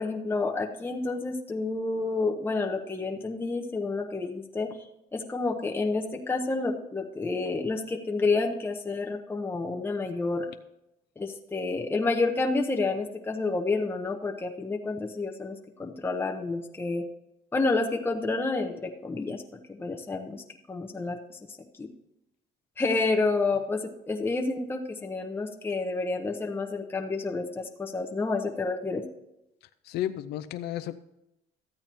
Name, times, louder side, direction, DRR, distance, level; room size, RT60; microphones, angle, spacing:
voice 1, 0.0-4.7 5.1-10.5 11.2-17.0 17.5-19.4 19.8-20.4 20.7-21.4 21.8-21.9 22.8-23.8 24.1-29.0, left 3 dB, 15° left, 1 dB, 0.8 m, -29 dB
voice 2, 29.8-31.0, left 12 dB, 75° left, 10 dB, 0.5 m, -32 dB
13.5 x 8.6 x 3.0 m, 0.88 s
cardioid pair, 110°, 17 cm